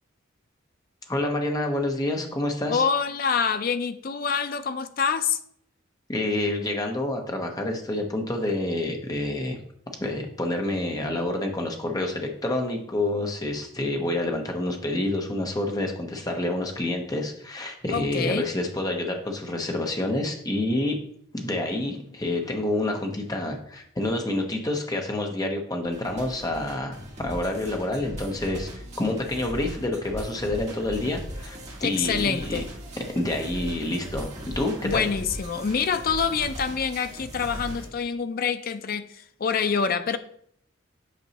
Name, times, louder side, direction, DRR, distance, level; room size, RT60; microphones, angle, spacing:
voice 1, 1.1-2.8 6.1-9.6 10.0-21.0 21.3-32.6 33.1-35.1, left 1 dB, 20° left, 3 dB, 0.8 m, -28 dB
voice 2, 2.7-5.4 17.9-18.5 31.8-32.7 34.8-40.2, left 6 dB, 45° left, 11 dB, 0.4 m, -26 dB
sound 1, 25.9-37.9, equal, 35° right, 1.6 m, -38 dB
8.1 x 5.3 x 2.9 m, 0.67 s
head